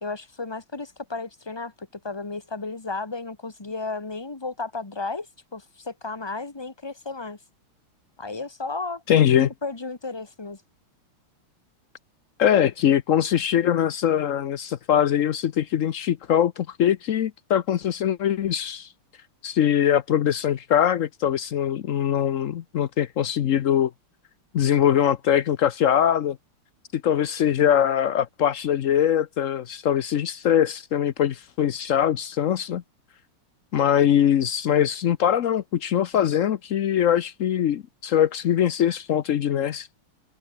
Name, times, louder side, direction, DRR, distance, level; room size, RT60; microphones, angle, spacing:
voice 1, 0.0-5.3 5.5-7.4 8.2-9.0 9.6-10.6, left 3 dB, 15° left, 1.4 m, -33 dB
voice 2, 9.1-9.5 12.4-18.9 19.4-23.9 24.5-26.4 26.9-32.8 33.7-39.9, left 10 dB, 90° left, 0.7 m, -22 dB
omnidirectional pair, 2.4 m